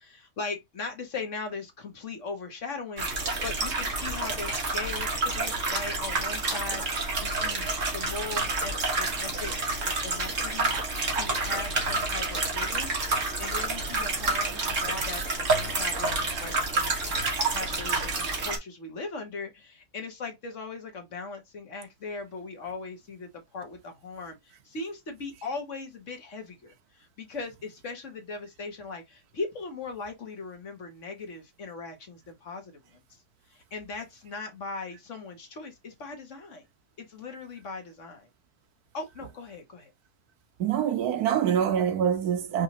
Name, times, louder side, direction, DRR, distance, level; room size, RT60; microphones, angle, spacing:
voice 1, 0.0-7.7 7.9-9.5 9.8-10.7 11.1-33.0 33.5-36.7 37.0-38.3 38.9-39.9, left 4 dB, 50° left, 1.4 m, -39 dB
sound 1, 3.0-18.6, right 3 dB, 55° right, 1.6 m, -29 dB
voice 2, 40.6-42.6, right 9 dB, 75° right, 1.2 m, -25 dB
5.2 x 2.6 x 2.8 m
omnidirectional pair, 1.7 m